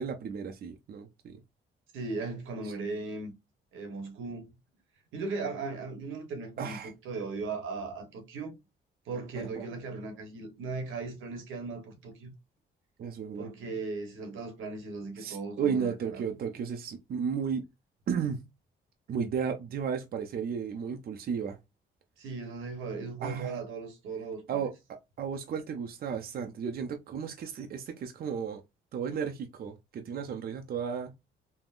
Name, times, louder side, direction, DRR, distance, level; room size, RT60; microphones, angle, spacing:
voice 1, 0.0-1.4 6.6-6.9 9.6-9.7 13.0-13.5 15.2-17.6 18.1-18.4 19.1-21.6 23.2-23.6 24.5-24.7 25.2-28.6 28.9-31.1, right 6 dB, 50° right, 0.5 m, -34 dB
voice 2, 1.9-3.3 3.7-4.5 5.1-8.6 9.1-12.3 13.4-16.2 22.2-24.6, right 3 dB, 85° right, 1.0 m, -37 dB
3.6 x 2.0 x 2.4 m
cardioid pair, 90°, 20 cm